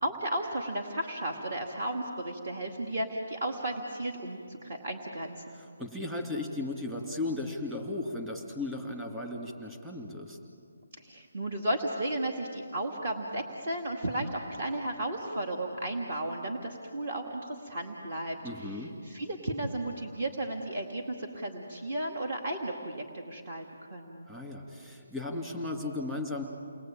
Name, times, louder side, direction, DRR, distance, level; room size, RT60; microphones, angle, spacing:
voice 1, 0.0-5.6 11.0-24.3, right 1 dB, 40° right, 2 dB, 2.2 m, -34 dB
voice 2, 5.5-10.4 18.4-18.9 24.3-26.4, left 2 dB, 10° right, 1 dB, 2.4 m, -36 dB
29.0 x 21.0 x 9.0 m, 2.4 s
hypercardioid pair, 170°, 0 cm